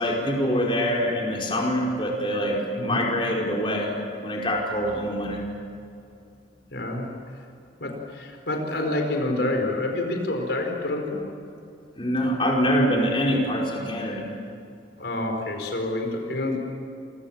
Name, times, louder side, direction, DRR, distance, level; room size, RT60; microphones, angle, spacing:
voice 1, 0.0-3.9 4.2-5.4 12.0-14.3, equal, 30° left, -2 dB, 5.1 m, -24 dB
voice 2, 6.7-7.1 7.8-11.2 15.0-16.6, left 2 dB, 75° left, 3 dB, 4.7 m, -27 dB
29.0 x 24.5 x 7.4 m, 2.5 s
head